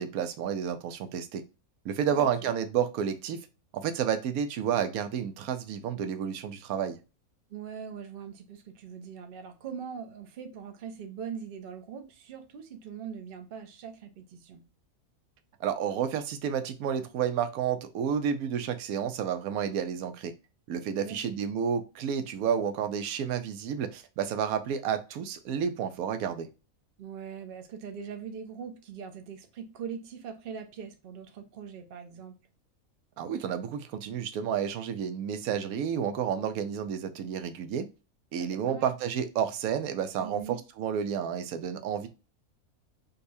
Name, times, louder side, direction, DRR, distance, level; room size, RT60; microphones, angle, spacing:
voice 1, 0.0-1.4 1.8-3.4 3.7-7.0 15.6-20.3 20.7-26.5 33.2-37.8 38.3-40.4 40.8-42.1, right 8 dB, 90° right, 1.1 m, -30 dB
voice 2, 2.1-2.5 7.5-14.6 21.0-21.4 27.0-32.4 38.4-38.9 40.2-40.6, right 7 dB, 50° right, 0.7 m, -41 dB
5.3 x 2.3 x 2.6 m
omnidirectional pair, 1.5 m